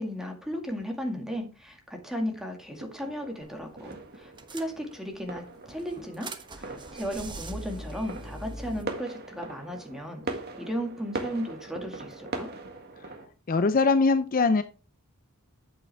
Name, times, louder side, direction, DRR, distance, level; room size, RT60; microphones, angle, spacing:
voice 1, 0.0-12.5, equal, ahead, 3 dB, 2.0 m, -35 dB
sound 1, 2.8-13.3, right 3 dB, 45° right, 1.8 m, -41 dB
sound 2, 3.4-3.7 3.9-4.0 4.4-5.2 5.7-8.8, right 1 dB, 20° right, 1.1 m, -41 dB
voice 2, 13.5-14.6, left 4 dB, 40° left, 11 dB, 0.5 m, -22 dB
8.8 x 8.0 x 3.4 m, 0.33 s
head